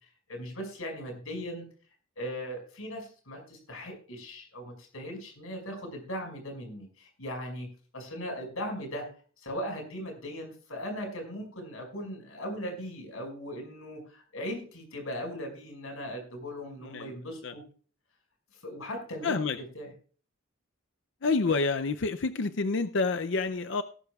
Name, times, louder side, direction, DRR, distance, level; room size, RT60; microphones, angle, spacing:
voice 1, 0.3-1.6 2.2-9.1 9.4-17.6 18.6-19.4 19.7-19.9, equal, 85° left, 3 dB, 5.7 m, -38 dB
voice 2, 16.8-17.2 17.4-17.5 19.2-19.6 21.2-23.8, left 4 dB, 60° left, 10 dB, 0.5 m, -28 dB
18.5 x 12.0 x 2.4 m, 0.41 s
head